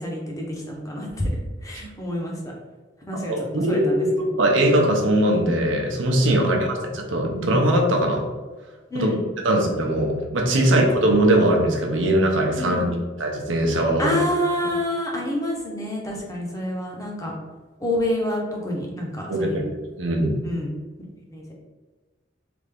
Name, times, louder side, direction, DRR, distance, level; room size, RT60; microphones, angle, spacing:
voice 1, 0.0-2.4 3.1-3.3 3.7-4.3 6.4-6.6 8.9-9.3 10.6-10.8 12.6-12.9 14.0-17.3 17.8-19.6 20.4-20.7 21.3-21.5, left 1 dB, 15° left, -2 dB, 0.7 m, -28 dB
voice 2, 3.3-4.1 4.4-8.2 8.9-9.1 9.4-14.2 19.3-19.7 20.0-20.4, right 1 dB, 80° right, 1 dB, 0.7 m, -21 dB
3.3 x 2.5 x 3.4 m, 1.3 s
head